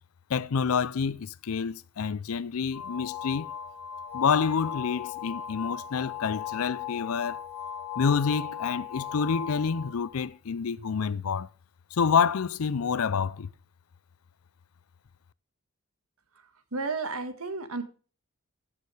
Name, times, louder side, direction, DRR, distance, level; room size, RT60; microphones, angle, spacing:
voice 1, 0.3-3.5 4.1-7.4 8.0-11.5 11.9-13.5, left 6 dB, 85° left, 0.5 m, -28 dB
sound 1, 2.7-10.3, left 9 dB, 10° left, 6.3 m, -37 dB
voice 2, 16.3-17.8, right 3 dB, 90° right, 1.5 m, -33 dB
14.5 x 6.9 x 3.3 m
head